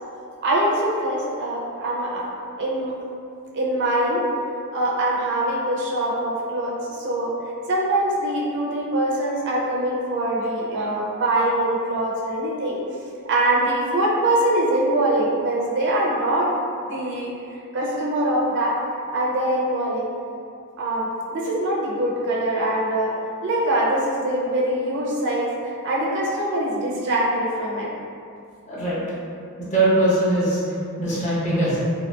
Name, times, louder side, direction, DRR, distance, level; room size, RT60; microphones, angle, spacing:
voice 1, 0.4-2.3 2.6-2.9 3.5-4.2 4.7-7.3 7.7-12.8 13.3-16.5 16.8-17.3 17.7-18.8 19.1-20.1 20.8-23.1 23.4-27.9, right 1 dB, 55° right, -4 dB, 0.5 m, -23 dB
voice 2, 28.7-29.0 29.6-30.6 31.0-31.8, right 1 dB, 30° left, -9 dB, 0.8 m, -21 dB
2.8 x 2.8 x 2.3 m, 2.5 s
head